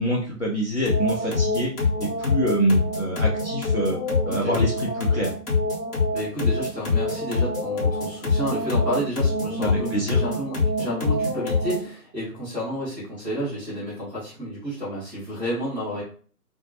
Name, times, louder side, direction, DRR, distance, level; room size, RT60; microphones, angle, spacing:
voice 1, 0.0-1.7 2.0-4.0 4.2-5.3 9.6-10.2, right 1 dB, 50° left, -4 dB, 0.4 m, -25 dB
sound 1, 0.9-11.9, left 3 dB, 70° left, 1.0 m, -25 dB
voice 2, 6.1-16.0, equal, 5° left, -9 dB, 0.8 m, -31 dB
2.1 x 2.1 x 2.7 m, 0.43 s
figure-of-eight pair, 145°, 48 cm